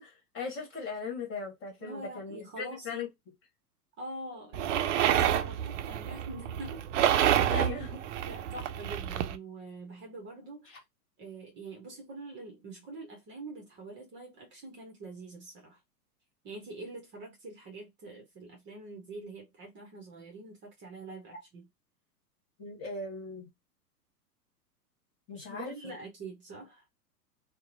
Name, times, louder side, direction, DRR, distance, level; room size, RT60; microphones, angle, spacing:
voice 1, 0.0-3.1 7.5-8.0 22.6-23.5 25.3-25.9, left 4 dB, 25° left, 1.4 m, -39 dB
voice 2, 1.8-3.0 4.0-6.9 7.5-7.7 8.2-10.8 11.2-15.8 16.4-21.6 25.4-26.9, right 2 dB, 25° right, 0.8 m, -44 dB
sound 1, 4.5-9.4, right 10 dB, 55° right, 0.5 m, -28 dB
2.8 x 2.1 x 2.5 m
hypercardioid pair, 105°, 47 cm